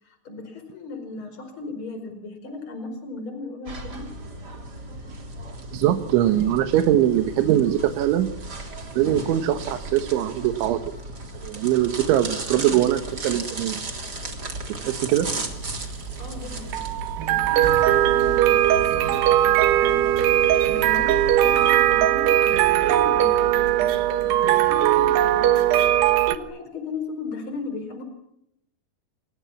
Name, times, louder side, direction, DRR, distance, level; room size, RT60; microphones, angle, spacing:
voice 1, 0.0-4.1 16.2-16.8 17.2-20.1 20.6-25.6 26.2-28.0, left 4 dB, 30° left, 8 dB, 5.3 m, -37 dB
sound 1, 3.7-22.1, right 2 dB, 25° right, 3.3 m, -36 dB
voice 2, 5.7-8.3 9.0-10.8 11.4-13.8 14.8-15.3, right 12 dB, 90° right, 8 dB, 3.8 m, -22 dB
sound 2, 15.3-26.4, right 12 dB, 70° right, 3.3 m, -20 dB
28.5 x 24.5 x 7.3 m, 0.81 s
omnidirectional pair, 5.2 m